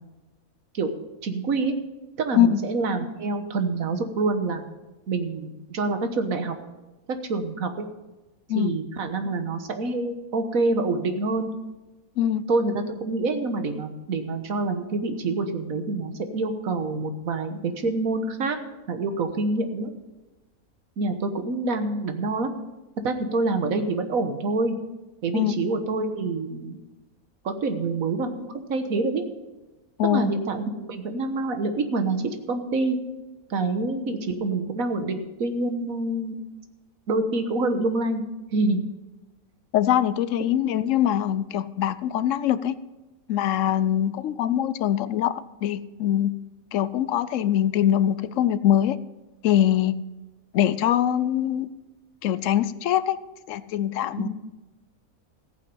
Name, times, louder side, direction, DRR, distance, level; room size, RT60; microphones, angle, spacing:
voice 1, 1.2-1.7 2.2-4.7 5.1-6.6 7.3-7.9 8.5-11.5 12.5-18.6 18.9-19.9 21.0-22.5 23.0-24.8 25.2-26.8 27.4-29.2 30.0-33.0 33.5-36.4 37.1-38.2 38.5-38.8, right 3 dB, 70° right, 8 dB, 1.7 m, -26 dB
voice 2, 30.0-30.3 39.7-42.7 43.3-46.3 46.7-49.0 49.4-50.0 50.5-51.7 52.2-53.2 53.5-54.3, left 11 dB, 65° left, 16 dB, 0.9 m, -23 dB
14.5 x 8.7 x 5.4 m, 1.1 s
omnidirectional pair, 1.5 m